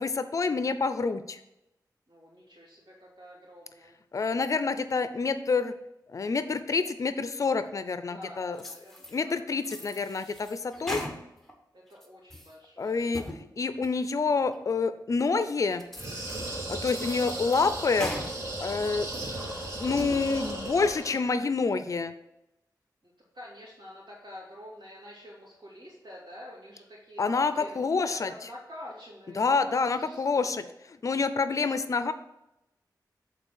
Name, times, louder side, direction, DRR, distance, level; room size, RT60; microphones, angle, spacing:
voice 1, 0.0-1.4 4.1-5.7 6.1-8.6 9.1-11.0 12.8-15.8 16.7-18.1 18.6-19.1 19.8-22.1 27.2-28.3 29.4-32.1, left 4 dB, 50° left, 11 dB, 0.5 m, -27 dB
voice 2, 2.1-4.0 8.1-9.8 11.7-13.3 21.4-21.5 23.0-30.6, left 1 dB, 85° right, -10 dB, 2.7 m, -48 dB
sound 1, 8.6-9.2 9.6-11.5 11.9-12.5 13.0-13.4 13.8-13.9 14.5-14.6 15.2-15.3 15.8-16.5 16.9-18.3 18.7-19.4 19.8-20.2, left 1 dB, 5° left, 1.1 m, -40 dB
sound 2, 15.9-21.3, right 1 dB, 45° right, 3.0 m, -36 dB
8.0 x 4.1 x 6.3 m, 0.90 s
wide cardioid pair, 135°, 7 cm